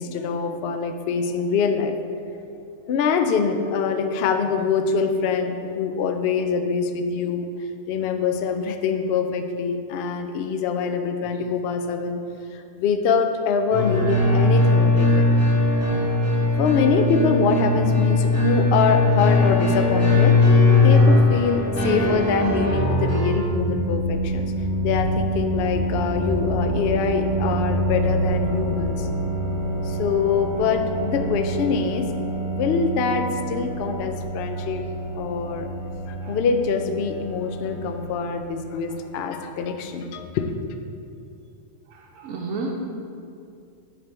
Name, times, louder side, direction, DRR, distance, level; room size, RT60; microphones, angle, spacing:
voice 1, 0.0-2.0 2.9-7.5 7.9-12.2 12.5-15.3 16.6-24.5 24.8-29.1 29.8-34.8 35.2-35.7 36.1-40.8, left 5 dB, 65° left, 6 dB, 0.7 m, -24 dB
sound 1, 13.7-23.3, left 2 dB, 10° right, 1.4 m, -19 dB
sound 2, 22.6-38.9, right 1 dB, 45° right, 1.2 m, -28 dB
voice 2, 41.9-42.7, right 3 dB, 80° right, -1 dB, 1.0 m, -31 dB
9.7 x 3.4 x 4.3 m, 2.5 s
omnidirectional pair, 1.4 m